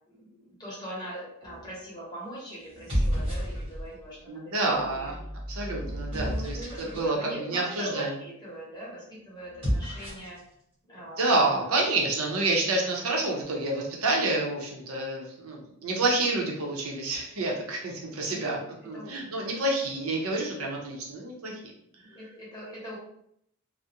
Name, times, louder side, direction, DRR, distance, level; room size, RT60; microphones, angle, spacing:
voice 1, 0.1-5.2 6.1-10.4 10.9-11.6 18.3-19.6 19.9-20.0 22.0-23.0, equal, 20° left, -7 dB, 0.9 m, -41 dB
sound 1, 1.4-1.8 2.7-4.0 4.8-7.1 9.4-10.4, equal, 25° right, 1.0 m, -32 dB
voice 2, 4.3-5.1 5.5-8.1 11.2-18.6 18.8-21.6, right 2 dB, 75° right, -1 dB, 0.6 m, -28 dB
2.3 x 2.0 x 2.8 m, 0.71 s
head